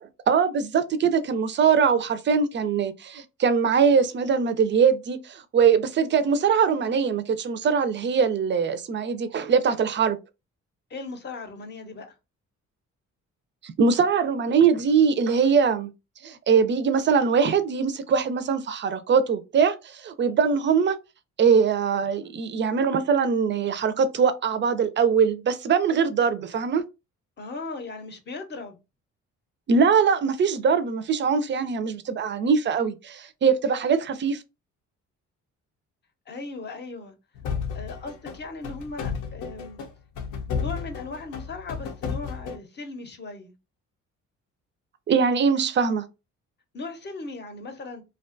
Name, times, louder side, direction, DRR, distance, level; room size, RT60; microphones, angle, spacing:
voice 1, 0.0-10.2 13.6-15.9 16.2-21.0 21.4-26.8 29.7-34.4 45.1-46.1, right 6 dB, 40° right, 0.4 m, -22 dB
voice 2, 10.9-12.1 27.4-28.8 36.3-37.1 37.7-39.8 40.6-43.5 46.7-48.0, left 3 dB, 35° left, 0.7 m, -37 dB
sound 1, 37.3-42.6, left 6 dB, 80° left, 0.7 m, -32 dB
2.5 x 2.2 x 2.5 m
cardioid pair, 90°, 30 cm